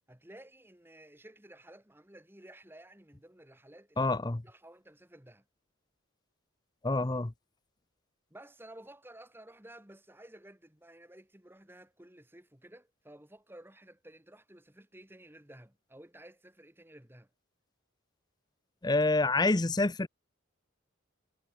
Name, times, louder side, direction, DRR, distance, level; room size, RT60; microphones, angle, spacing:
voice 1, 0.1-4.1 4.4-5.4 8.3-17.3, right 1 dB, 10° right, 2.1 m, -54 dB
voice 2, 4.0-4.4 6.8-7.3 18.8-20.1, left 2 dB, 20° left, 0.6 m, -27 dB
head